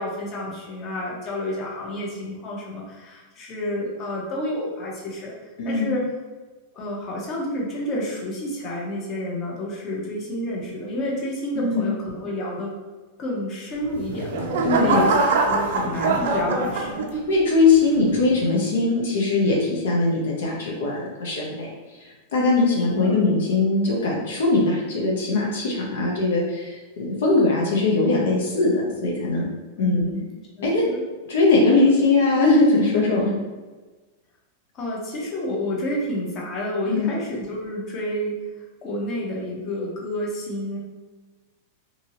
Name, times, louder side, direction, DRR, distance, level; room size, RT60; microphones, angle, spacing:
voice 1, 0.0-5.3 5.6-6.0 6.7-12.8 13.2-14.5 14.8-17.1 22.8-23.2 29.8-30.3 30.6-31.0 34.7-38.4 38.8-40.8, left 1 dB, 35° left, -3 dB, 0.9 m, -29 dB
voice 2, 5.6-5.9 11.6-11.9 14.6-15.1 17.3-21.7 22.3-29.5 29.8-30.1 30.6-30.8 31.3-33.3 36.9-37.1, left 3 dB, 80° left, -3 dB, 0.7 m, -20 dB
sound 1, 13.8-17.4 18.0-18.3, right 3 dB, 75° right, 0.4 m, -23 dB
2.7 x 2.7 x 2.8 m, 1.3 s
hypercardioid pair, 120°, 0 cm